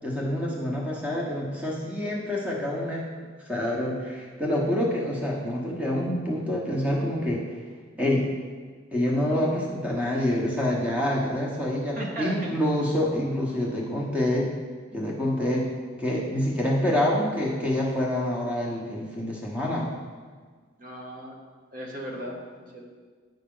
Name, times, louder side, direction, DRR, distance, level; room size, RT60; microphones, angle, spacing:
voice 1, 0.0-3.1 3.5-7.4 8.0-8.3 8.9-14.5 14.9-15.7 16.0-19.9, left 1 dB, 5° right, -3 dB, 1.0 m, -27 dB
voice 2, 12.0-12.3 20.8-21.4 21.7-22.8, right 1 dB, 40° right, -1 dB, 0.8 m, -36 dB
9.1 x 5.6 x 3.8 m, 1.6 s
head